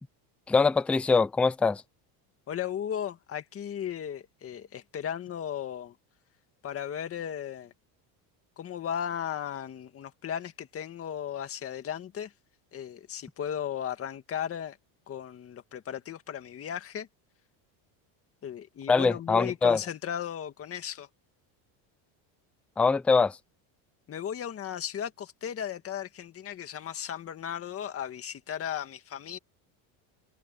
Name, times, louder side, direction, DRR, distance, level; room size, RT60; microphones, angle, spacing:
voice 1, 0.5-1.8 18.9-19.8 22.8-23.4, left 4 dB, 5° left, 0.3 m, -23 dB
voice 2, 2.5-6.0 6.6-7.7 8.6-12.3 12.7-14.8 15.1-17.1 18.4-21.1 24.1-29.4, left 9 dB, 30° left, 1.9 m, -36 dB
cardioid pair, 150°, 46 cm